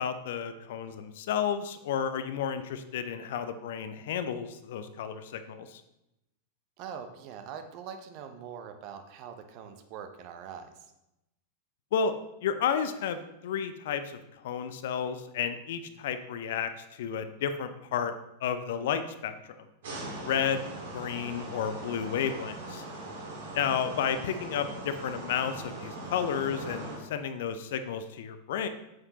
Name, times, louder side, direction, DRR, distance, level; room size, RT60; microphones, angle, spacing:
voice 1, 0.0-5.8 11.9-12.1 12.4-18.1 18.4-19.7 20.2-20.6 20.9-22.8 23.5-28.7, left 7 dB, 55° left, 10 dB, 0.6 m, -32 dB
voice 2, 6.8-10.7 23.4-23.7, right 7 dB, 45° right, 7 dB, 0.9 m, -43 dB
sound 1, 19.8-27.0, right 2 dB, 60° right, 2.1 m, -40 dB
7.8 x 7.5 x 2.9 m, 0.89 s
figure-of-eight pair, 90°, 0 cm